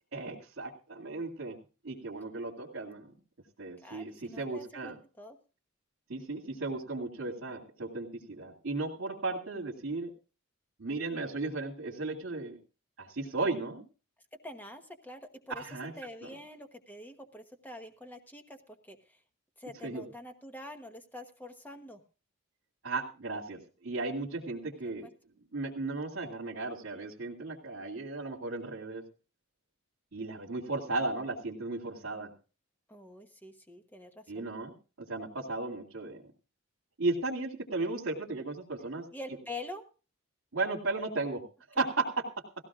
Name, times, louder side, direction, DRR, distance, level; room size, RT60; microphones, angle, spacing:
voice 1, 0.1-1.6 1.8-3.1 3.6-5.0 6.1-10.1 10.8-12.6 13.0-13.8 15.5-15.9 16.2-16.3 19.8-20.1 22.8-25.1 25.5-29.0 30.1-32.3 34.3-36.2 37.0-39.0 40.5-41.4 41.7-42.2, right 3 dB, 70° right, -4 dB, 2.6 m, -35 dB
voice 2, 3.8-5.4 14.4-15.7 16.0-19.0 19.6-22.0 25.0-25.1 32.9-34.5 39.1-39.9, left 1 dB, 10° left, 5 dB, 1.1 m, -46 dB
18.5 x 16.0 x 2.5 m, 0.34 s
head